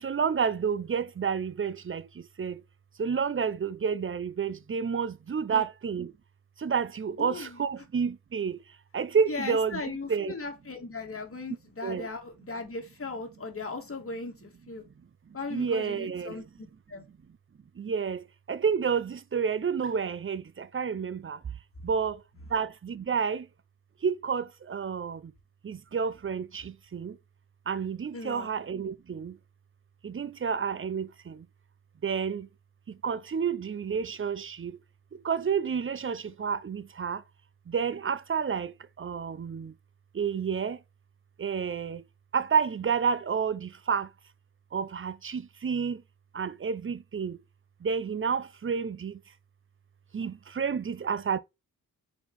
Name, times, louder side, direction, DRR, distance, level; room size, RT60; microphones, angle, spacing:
voice 1, 0.0-2.0 2.4-2.5 3.0-6.1 6.6-8.6 8.9-9.8 10.1-10.3 11.8-12.1 15.5-16.4 17.8-18.2 18.5-20.4 20.7-21.4 21.8-22.1 22.5-23.4 24.0-25.2 25.6-26.6 26.9-27.1 27.7-29.3 30.0-31.1 32.0-32.5 33.0-34.7 35.2-37.2 37.7-38.7 39.0-39.7 40.2-40.8 41.4-42.0 42.3-44.1 44.7-46.0 46.4-47.4 47.8-49.1 50.1-51.4, right 6 dB, 35° right, 0.6 m, -29 dB
voice 2, 7.2-7.6 9.3-14.8 15.3-17.0 28.1-28.5, left 3 dB, 40° left, 1.9 m, -38 dB
4.5 x 4.4 x 5.3 m
cardioid pair, 75°, 34 cm